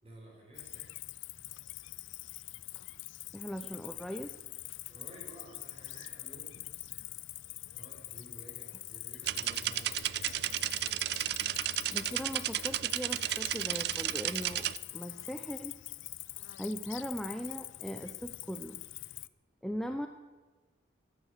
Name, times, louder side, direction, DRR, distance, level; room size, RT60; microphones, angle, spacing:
voice 1, 0.0-0.9 3.2-3.3 4.9-6.6 7.7-11.0, right 1 dB, 30° right, -1 dB, 5.1 m, -53 dB
Cricket, 0.6-19.3, left 17 dB, 85° left, 0.5 m, -45 dB
voice 2, 3.3-4.3 11.9-14.7 14.9-15.7 16.6-18.8 19.6-20.1, equal, 5° left, 6 dB, 0.6 m, -39 dB
sound 1, 9.3-14.8, right 13 dB, 55° right, 0.4 m, -33 dB
16.0 x 12.0 x 6.6 m, 1.3 s
head